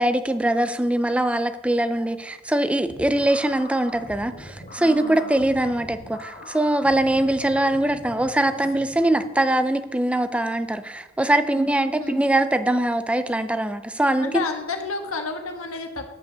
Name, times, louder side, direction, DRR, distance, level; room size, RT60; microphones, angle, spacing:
voice 1, 0.0-14.3, right 1 dB, 5° right, 0.4 m, -22 dB
sound 1, 2.8-9.6, left 1 dB, 35° left, 2.9 m, -42 dB
voice 2, 4.8-5.4 11.5-12.2 14.2-16.1, left 4 dB, 70° left, 1.4 m, -31 dB
9.9 x 5.4 x 6.6 m
head